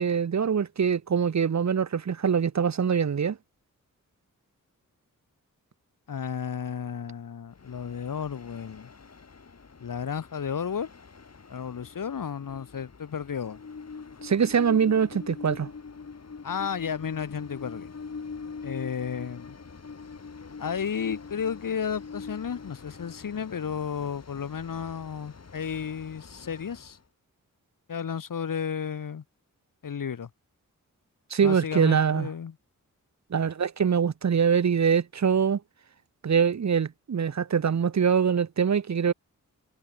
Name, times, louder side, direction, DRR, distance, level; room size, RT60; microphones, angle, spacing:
voice 1, 0.0-3.4 14.2-15.7 31.3-32.3 33.3-35.6 36.2-39.1, right 7 dB, 55° right, 1.0 m, -24 dB
voice 2, 6.1-8.9 9.8-10.9 11.5-13.6 16.4-17.9 18.6-19.5 20.6-27.0 27.9-29.2 29.8-30.3 31.4-32.5, left 7 dB, 80° left, 2.0 m, -33 dB
Train, 7.5-27.0, left 5 dB, 50° left, 4.4 m, -44 dB
wide cardioid pair, 125°, 32 cm